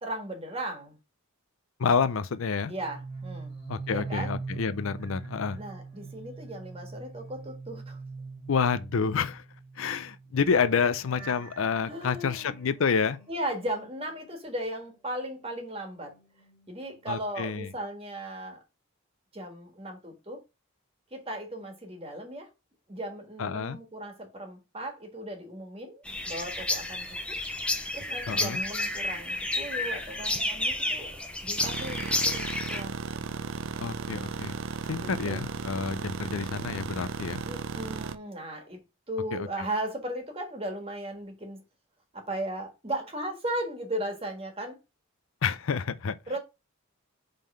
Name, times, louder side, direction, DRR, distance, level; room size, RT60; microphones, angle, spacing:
voice 1, 0.0-1.0 2.7-3.5 3.9-4.3 5.5-8.0 11.9-12.6 13.3-16.2 16.7-18.6 19.3-20.4 21.1-22.5 22.9-27.4 27.9-31.1 31.4-32.9 35.0-35.4 37.5-38.8 39.1-41.6 42.1-44.8 46.3-46.4, right 1 dB, 25° right, 1.6 m, -36 dB
voice 2, 1.8-2.7 3.7-5.6 8.5-9.4 9.8-13.2 17.1-17.7 23.4-23.8 28.3-28.6 33.8-34.6 34.9-37.4 39.3-39.5 45.4-46.2, left 5 dB, 70° left, 0.5 m, -28 dB
sound 1, 2.7-14.9 15.2-17.3 17.6-18.0, right 3 dB, 20° left, 2.4 m, -43 dB
sound 2, 26.0-32.8, left 2 dB, 5° left, 0.6 m, -31 dB
sound 3, 31.6-38.2, right 5 dB, 65° right, 0.5 m, -35 dB
5.2 x 3.7 x 5.4 m
head